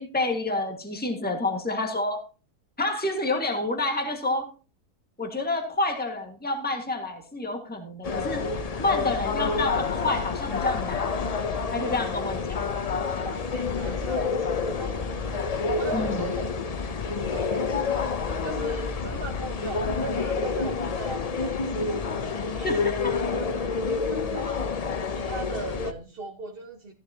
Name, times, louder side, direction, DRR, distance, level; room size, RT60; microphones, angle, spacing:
voice 1, 0.0-2.2 2.8-4.5 5.2-8.4 8.8-11.0 11.7-12.6 15.9-16.2 22.6-23.1, left 2 dB, 5° left, 3 dB, 1.7 m, -28 dB
sound 1, 8.0-25.9, left 5 dB, 55° left, 0.4 m, -28 dB
voice 2, 12.7-17.8 18.4-22.1 22.5-24.7 25.1-26.9, right 3 dB, 40° right, 2 dB, 1.4 m, -39 dB
15.5 x 10.0 x 2.8 m, 0.36 s
omnidirectional pair, 1.6 m